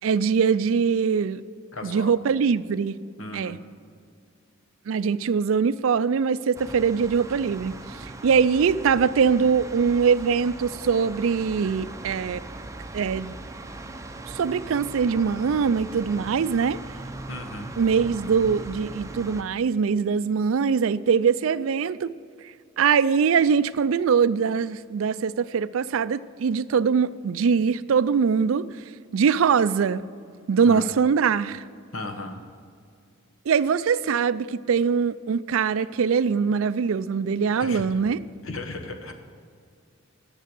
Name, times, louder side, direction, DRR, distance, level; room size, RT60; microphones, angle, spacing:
voice 1, 0.0-1.4 1.8-3.0 3.3-3.6 4.9-12.4 12.9-13.4 14.3-16.8 17.8-22.1 22.8-28.7 29.1-30.0 30.5-31.6 33.5-38.2, right 6 dB, 70° right, 0.4 m, -22 dB
voice 2, 1.7-2.2 3.2-3.6 17.3-17.8 30.6-30.9 31.9-32.4 37.6-37.8 38.4-39.1, left 2 dB, 70° left, 1.2 m, -35 dB
sound 1, 6.5-19.4, right 2 dB, 15° right, 0.6 m, -39 dB
10.0 x 6.9 x 7.8 m
head